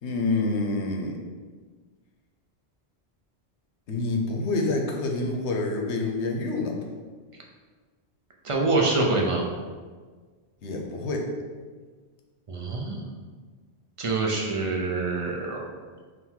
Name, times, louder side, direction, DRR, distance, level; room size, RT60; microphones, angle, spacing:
voice 1, 0.0-1.2 3.9-6.8 10.6-11.3, left 2 dB, 85° left, 2 dB, 0.9 m, -27 dB
voice 2, 8.4-9.4 12.5-13.0 14.0-15.7, right 3 dB, 45° right, -1 dB, 0.4 m, -25 dB
3.7 x 2.6 x 4.3 m, 1.5 s
omnidirectional pair, 1.1 m